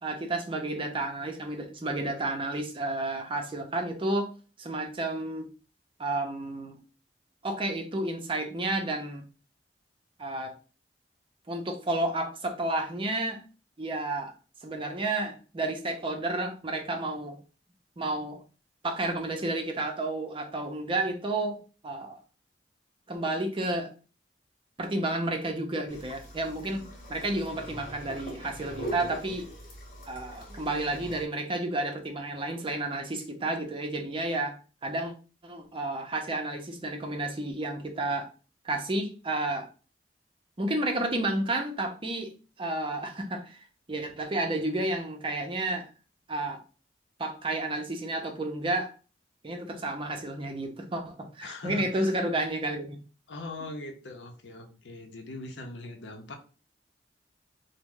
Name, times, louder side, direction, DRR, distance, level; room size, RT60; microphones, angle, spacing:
voice 1, 0.0-4.3 4.6-5.5 6.0-6.8 7.4-9.2 10.2-10.5 11.5-13.4 13.8-14.3 14.6-17.4 18.0-18.4 18.8-21.6 21.8-22.2 23.1-23.9 24.8-29.5 30.1-35.1 35.4-38.3 38.6-39.7 40.6-42.3 42.6-45.9 46.3-46.6 47.2-48.9 49.4-53.0, right 2 dB, 30° right, 0.6 m, -31 dB
sound 1, 25.9-31.2, equal, 50° left, 1.0 m, -42 dB
voice 2, 51.4-52.1 53.3-56.4, left 2 dB, 85° left, 0.6 m, -41 dB
3.0 x 2.1 x 3.6 m
head